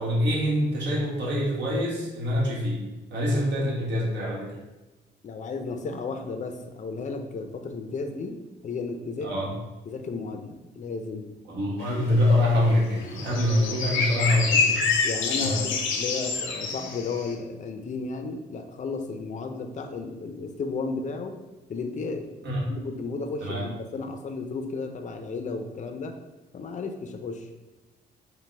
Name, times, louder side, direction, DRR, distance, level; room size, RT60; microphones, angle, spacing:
voice 1, 0.0-2.8 3.1-4.6 9.2-9.5 11.5-14.9 15.4-15.6 22.4-22.6 23.4-23.7, left 1 dB, 65° right, -4 dB, 1.5 m, -25 dB
voice 2, 5.2-9.5 9.9-11.3 15.0-21.4 21.7-22.3 22.7-26.1 26.5-27.5, left 4 dB, 40° left, 6 dB, 0.5 m, -34 dB
sound 1, 11.8-17.3, left 5 dB, 75° left, 0.6 m, -27 dB
5.3 x 2.2 x 3.3 m, 1.1 s
cardioid pair, 90°, 20 cm